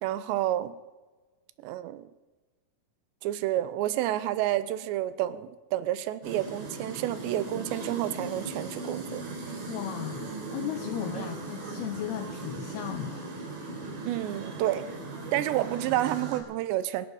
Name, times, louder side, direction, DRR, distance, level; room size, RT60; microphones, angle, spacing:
voice 1, 0.0-0.8 1.6-2.1 3.2-9.2 11.2-11.3 14.0-14.9 15.3-17.1, right 13 dB, 90° right, 14 dB, 3.0 m, -29 dB
sound 1, 6.2-16.4, right 2 dB, 60° right, 5.2 m, -38 dB
voice 2, 9.7-13.3, left 11 dB, 75° left, 6 dB, 2.8 m, -36 dB
25.0 x 11.5 x 4.9 m, 1.3 s
omnidirectional pair, 4.9 m